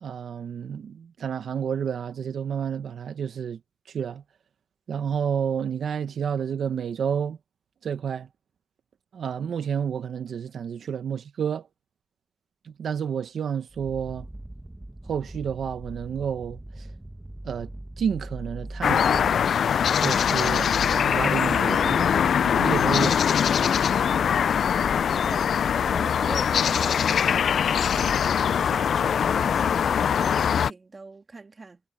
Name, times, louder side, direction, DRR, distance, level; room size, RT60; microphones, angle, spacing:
voice 1, 0.0-3.6 3.9-4.2 4.9-7.4 7.8-8.3 9.1-11.7 12.6-14.3 15.1-16.9 17.4-17.7 18.0-19.3 20.0-23.2, right 7 dB, 80° right, 1.2 m, -30 dB
sound 1, 13.7-19.5, right 1 dB, 15° right, 1.8 m, -40 dB
sound 2, 18.8-30.7, left 7 dB, 75° left, 0.4 m, -22 dB
voice 2, 25.9-31.8, right 3 dB, 40° right, 2.2 m, -42 dB
cardioid pair, 55°, 0 cm